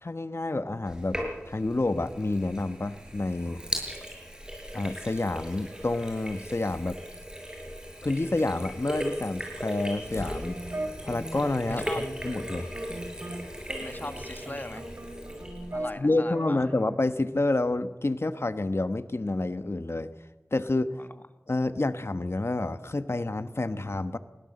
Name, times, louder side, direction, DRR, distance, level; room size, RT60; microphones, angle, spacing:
voice 1, 0.0-1.2 1.4-3.6 4.7-7.0 8.0-10.6 11.0-12.7 16.0-20.1 20.5-21.0 21.5-24.2, left 2 dB, 60° left, 11 dB, 1.1 m, -29 dB
Sink (filling or washing), 0.9-15.9, equal, 15° right, 7.0 m, -38 dB
sound 1, 9.6-14.8, left 2 dB, 85° left, 5.6 m, -46 dB
sound 2, 10.1-13.4 13.7-17.0, right 1 dB, 55° right, 3.6 m, -39 dB
voice 2, 11.7-12.1 13.8-14.9 15.7-16.7 20.9-21.1, left 1 dB, 40° left, 9 dB, 1.5 m, -39 dB
21.0 x 16.5 x 7.8 m, 1.2 s
wide cardioid pair, 50°, 5 cm